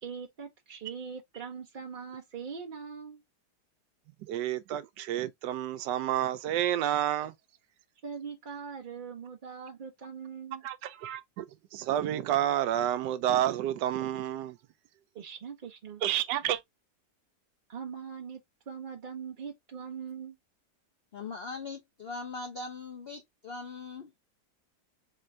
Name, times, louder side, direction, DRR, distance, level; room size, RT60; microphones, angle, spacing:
voice 1, 0.0-3.2 8.0-10.6 15.1-16.0 17.7-18.4 18.7-20.4, right 6 dB, 55° right, 0.5 m, -41 dB
voice 2, 4.3-7.3 10.6-11.4 11.7-14.6 16.0-16.6, right 11 dB, 80° right, 1.2 m, -29 dB
voice 3, 21.1-24.1, left 4 dB, 55° left, 0.6 m, -40 dB
4.3 x 2.5 x 3.1 m
omnidirectional pair, 1.9 m